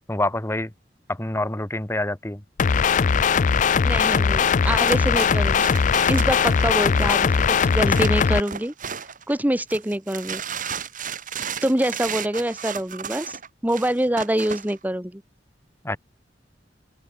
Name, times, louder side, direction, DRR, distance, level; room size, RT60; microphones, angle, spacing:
voice 1, 0.1-0.7 1.1-2.4 15.8-16.0, left 2 dB, 15° left, 1.3 m, -26 dB
sound 1, 2.6-8.4, left 6 dB, 45° left, 0.4 m, -19 dB
voice 2, 3.8-5.7 6.1-8.7 9.3-10.4 11.6-15.2, right 1 dB, 10° right, 1.0 m, -25 dB
sound 2, 4.8-9.3 9.7-14.7, right 7 dB, 50° right, 3.2 m, -34 dB
open air
head